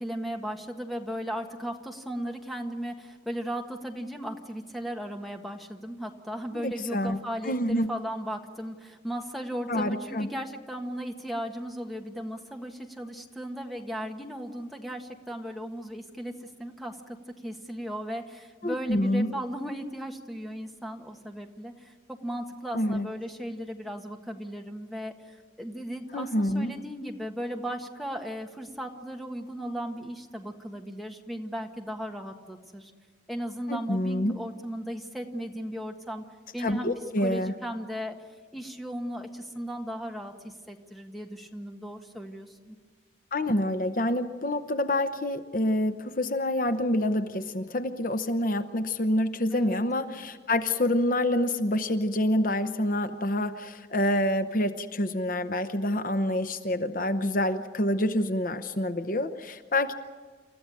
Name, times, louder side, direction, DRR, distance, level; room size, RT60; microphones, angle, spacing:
voice 1, 0.0-32.9 33.3-36.2 36.5-36.9 37.2-38.2 38.5-42.7 49.5-49.8, equal, ahead, 3 dB, 1.5 m, -36 dB
voice 2, 6.6-7.2 7.4-7.9 9.7-10.3 18.6-19.3 22.7-23.1 26.1-26.7 33.7-34.4 36.6-37.5 43.3-59.9, left 1 dB, 50° left, 9 dB, 0.8 m, -27 dB
29.0 x 14.0 x 9.1 m, 1.5 s
head